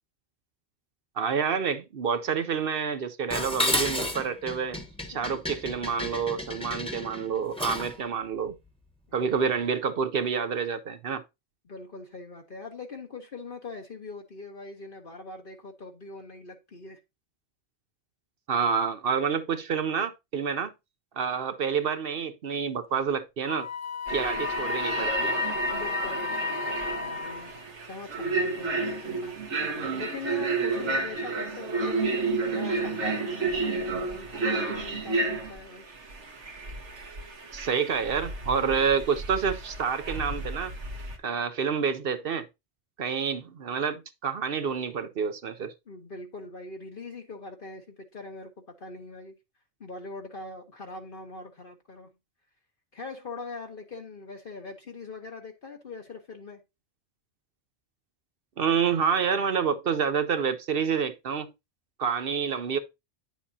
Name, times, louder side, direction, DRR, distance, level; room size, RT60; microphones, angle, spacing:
voice 1, 1.2-4.8 5.1-8.5 9.1-11.2 18.5-20.7 21.2-23.7 24.1-25.3 37.5-40.7 41.2-42.5 43.0-45.7 58.6-61.5 62.0-62.8, right 6 dB, 60° right, 0.8 m, -28 dB
Dishes pots and pans, 3.3-8.0, left 1 dB, 5° left, 1.1 m, -31 dB
voice 2, 11.6-17.0 25.6-27.5 27.8-29.3 29.9-35.8 45.9-48.5 48.8-49.3 49.8-52.1 52.9-56.6, left 3 dB, 50° left, 1.2 m, -42 dB
Wind instrument woodwind instrument, 23.5-27.6, left 8 dB, 85° left, 1.2 m, -35 dB
sound 1, 24.1-41.2, right 3 dB, 80° right, 1.6 m, -31 dB
9.8 x 7.2 x 2.7 m
omnidirectional pair, 1.2 m